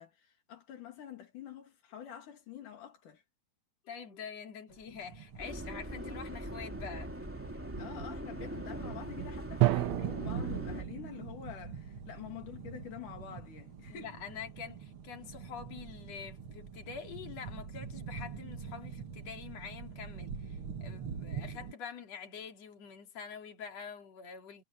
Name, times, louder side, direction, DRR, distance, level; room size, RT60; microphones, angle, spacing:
voice 1, 0.0-3.2 4.7-4.8 7.8-14.1, left 9 dB, 85° left, 4.1 m, -47 dB
voice 2, 3.8-7.2 9.8-10.1 13.9-24.6, left 6 dB, 55° left, 4.2 m, -46 dB
sound 1, 4.7-21.7, right 6 dB, 50° right, 2.3 m, -44 dB
Subway metro underground, 5.4-10.8, equal, 5° right, 2.6 m, -42 dB
Drum, 9.6-11.5, right 19 dB, 75° right, 1.8 m, -31 dB
omnidirectional pair, 3.5 m